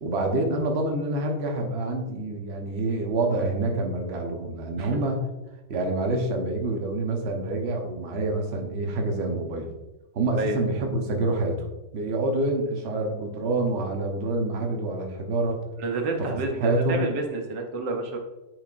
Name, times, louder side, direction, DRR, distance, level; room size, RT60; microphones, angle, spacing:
voice 1, 0.0-5.2 5.7-9.7 10.1-11.7 11.9-15.6 16.6-17.1, right 2 dB, 45° right, 2 dB, 1.0 m, -27 dB
voice 2, 15.8-18.2, right 3 dB, 75° right, 3 dB, 1.6 m, -29 dB
9.1 x 5.1 x 2.5 m, 1.1 s
omnidirectional pair, 2.0 m